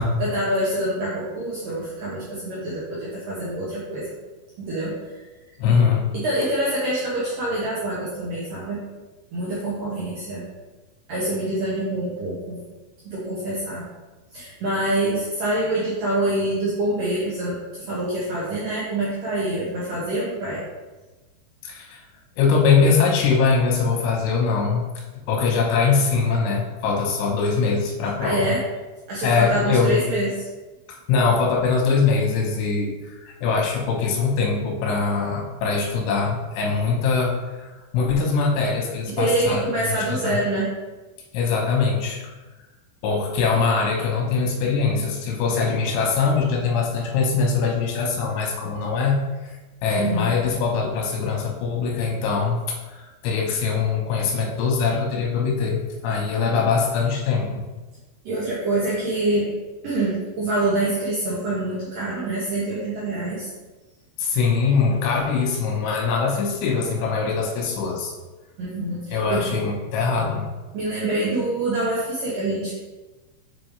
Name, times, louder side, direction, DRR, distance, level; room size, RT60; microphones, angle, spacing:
voice 1, 0.2-4.1 4.6-5.1 6.1-8.8 9.3-10.4 11.1-12.6 13.1-13.8 14.3-20.6 28.2-28.6 29.1-30.5 39.2-40.7 49.9-50.3 58.3-59.5 59.8-63.5 68.6-69.4 70.7-72.7, right 1 dB, 75° right, -7 dB, 2.0 m, -25 dB
voice 2, 5.6-6.0 21.6-22.0 22.4-24.8 25.3-28.5 29.2-30.0 30.9-39.6 40.2-40.4 41.3-42.2 43.0-49.2 49.8-57.6 64.2-68.1 69.1-70.5, left 5 dB, 85° left, 0 dB, 3.5 m, -22 dB
6.8 x 5.1 x 3.2 m, 1.2 s
omnidirectional pair, 5.4 m